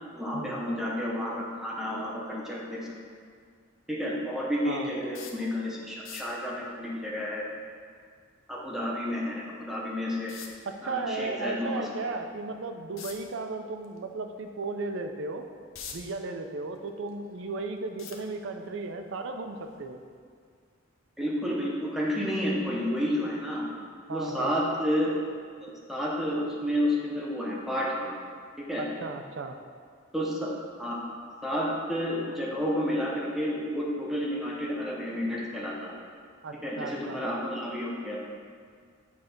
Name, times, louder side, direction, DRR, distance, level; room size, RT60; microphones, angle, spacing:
voice 1, 0.1-2.9 3.9-7.5 8.5-10.3 10.8-11.9 21.2-23.7 24.1-25.2 25.6-28.1 28.7-28.8 30.1-30.5 30.8-31.0 31.4-35.9 36.6-38.2, equal, ahead, -5 dB, 0.8 m, -30 dB
sound 1, 5.1-5.5 5.9-6.4 9.1-9.2 10.3-10.7 13.0-13.3 13.8-14.0 14.5-14.6 15.3-16.2 16.6-17.4 18.0-18.7 19.6-19.8 20.1-20.2, left 6 dB, 75° left, 0.7 m, -43 dB
voice 2, 10.7-15.5 15.9-20.0 24.1-24.5 28.8-29.6 36.4-37.2, right 3 dB, 65° right, 6 dB, 0.5 m, -35 dB
7.9 x 3.3 x 5.2 m, 2.1 s
head